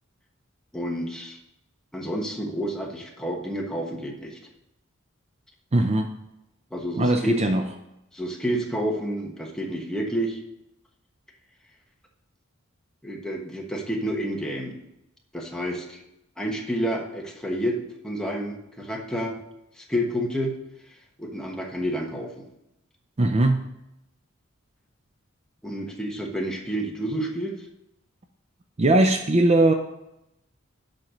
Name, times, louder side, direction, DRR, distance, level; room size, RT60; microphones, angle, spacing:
voice 1, 0.7-1.4 1.9-4.4 6.7-7.4 8.1-10.4 13.0-14.8 15.3-16.0 16.4-17.8 18.0-19.4 19.8-20.6 21.2-22.4 25.6-27.5, equal, 5° left, 0 dB, 1.2 m, -29 dB
voice 2, 5.7-6.1 7.0-7.6 23.2-23.6 28.8-29.7, right 2 dB, 30° right, 5 dB, 0.5 m, -19 dB
7.5 x 5.3 x 6.4 m, 0.86 s
head